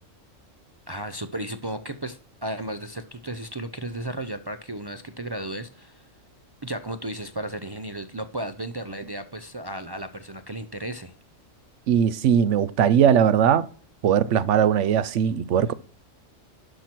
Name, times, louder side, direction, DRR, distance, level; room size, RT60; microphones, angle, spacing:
voice 1, 0.9-6.0 6.6-11.1, right 1 dB, 40° right, 0.3 m, -34 dB
voice 2, 11.9-13.7 14.0-15.7, right 8 dB, 70° right, 1.0 m, -20 dB
12.0 x 6.0 x 4.4 m
omnidirectional pair, 1.3 m